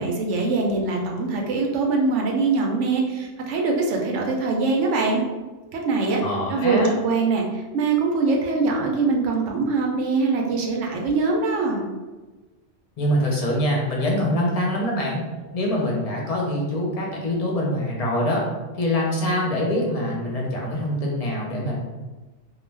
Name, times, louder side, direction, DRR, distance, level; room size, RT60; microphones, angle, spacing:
voice 1, 0.0-5.2 5.7-6.2 6.5-11.9, right 3 dB, 90° right, 1 dB, 0.9 m, -23 dB
voice 2, 6.2-6.9 13.0-15.2 15.5-18.4 18.8-21.8, left 1 dB, 45° left, -2 dB, 0.5 m, -24 dB
2.3 x 2.2 x 3.2 m, 1.2 s
omnidirectional pair, 1.2 m